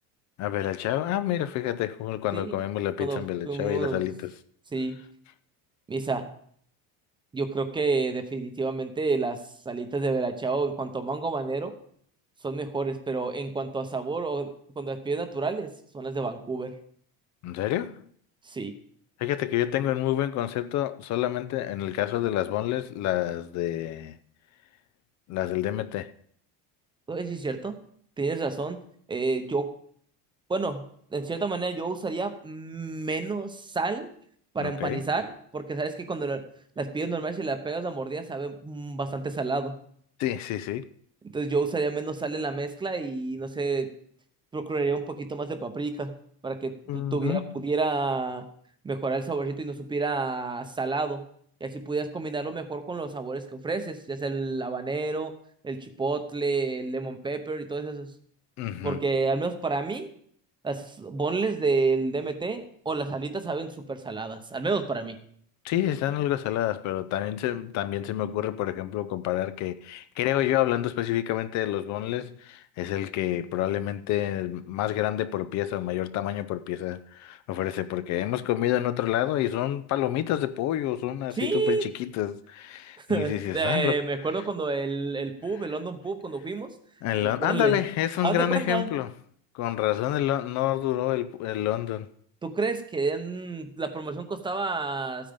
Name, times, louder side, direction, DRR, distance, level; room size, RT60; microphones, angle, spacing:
voice 1, 0.4-4.3 17.4-18.0 19.2-24.2 25.3-26.1 34.6-35.0 40.2-40.9 46.9-47.5 58.6-59.0 65.6-84.0 87.0-89.1 89.5-92.1, left 13 dB, 45° left, 0.5 m, -28 dB
voice 2, 3.0-4.1 4.7-5.0 5.9-6.3 7.3-11.7 12.4-16.7 18.4-18.7 27.1-27.8 28.2-28.8 29.1-29.7 30.5-30.8 31.1-34.1 34.5-36.5 36.8-39.7 41.3-43.9 44.5-46.1 46.4-48.4 48.8-51.2 51.6-55.3 55.6-58.1 58.8-60.1 60.6-65.2 81.4-81.8 83.0-86.7 87.2-87.8 88.2-88.9 92.4-95.3, right 3 dB, 10° right, 0.7 m, -29 dB
14.5 x 9.0 x 5.1 m
cardioid pair, 175°, 38 cm